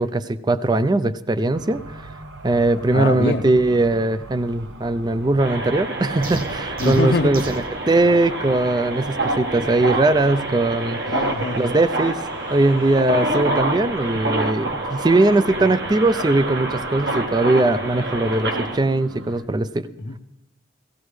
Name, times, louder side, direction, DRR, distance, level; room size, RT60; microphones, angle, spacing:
voice 1, 0.0-2.0 2.4-7.5 7.9-11.1 11.5-12.2 12.5-19.9, right 2 dB, 25° right, 14 dB, 0.4 m, -20 dB
sound 1, 1.5-19.4, right 2 dB, 90° right, 1.0 m, -41 dB
voice 2, 2.9-3.5 6.8-7.3 11.1-11.6 20.0-20.2, left 2 dB, 60° left, 7 dB, 0.6 m, -23 dB
sound 2, 5.4-18.8, right 2 dB, 65° right, 1.4 m, -27 dB
sound 3, 6.2-7.7, right 2 dB, 50° right, 0.9 m, -33 dB
16.5 x 16.5 x 3.2 m, 0.91 s
head